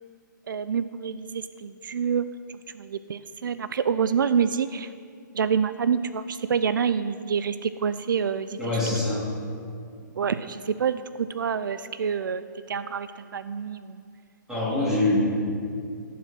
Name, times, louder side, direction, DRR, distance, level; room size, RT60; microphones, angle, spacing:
voice 1, 0.5-4.9 5.3-9.0 10.1-14.0, right 7 dB, 80° right, 13 dB, 0.5 m, -27 dB
voice 2, 8.6-9.2 14.5-15.2, left 2 dB, 5° right, -8 dB, 3.2 m, -24 dB
15.0 x 7.3 x 6.0 m, 2.3 s
hypercardioid pair, 155°, 11 cm